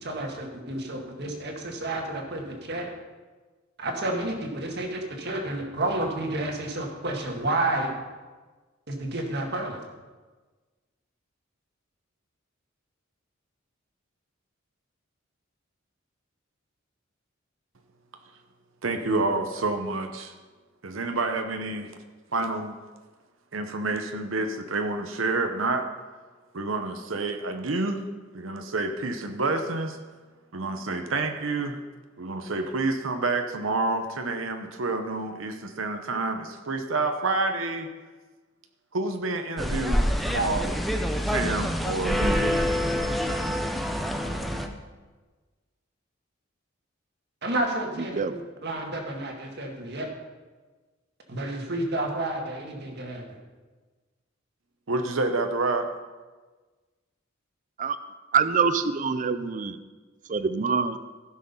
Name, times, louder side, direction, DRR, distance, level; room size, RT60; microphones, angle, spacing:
voice 1, 0.0-2.9 3.8-7.9 8.9-9.8 47.4-50.1 51.3-53.2, right 1 dB, 55° right, 2 dB, 1.8 m, -30 dB
voice 2, 18.8-20.3 20.8-21.9 22.3-22.8 23.5-25.9 26.5-28.0 28.3-30.0 30.5-31.8 32.2-37.9 38.9-40.8 41.3-42.6 54.9-55.9, right 3 dB, 80° right, 6 dB, 0.9 m, -28 dB
sound 1, 39.6-44.7, equal, ahead, 0.6 m, -26 dB
voice 3, 58.3-59.8 60.3-61.0, right 5 dB, 40° right, 12 dB, 0.5 m, -25 dB
15.5 x 6.4 x 5.5 m, 1.3 s
head